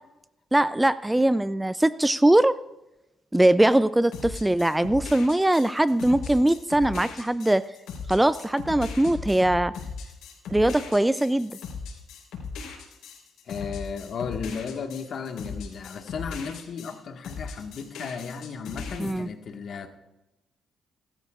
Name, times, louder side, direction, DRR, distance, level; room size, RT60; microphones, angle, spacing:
voice 1, 0.5-2.6 3.3-7.6 8.1-9.7 10.5-11.5 19.0-19.3, right 1 dB, 10° right, 15 dB, 0.3 m, -21 dB
sound 1, 4.1-16.9 17.2-19.1, left 5 dB, 85° left, 3.9 m, -38 dB
voice 2, 13.5-19.9, left 6 dB, 60° left, 4 dB, 1.6 m, -35 dB
20.5 x 13.5 x 2.4 m, 0.96 s
cardioid pair, 90°, 0 cm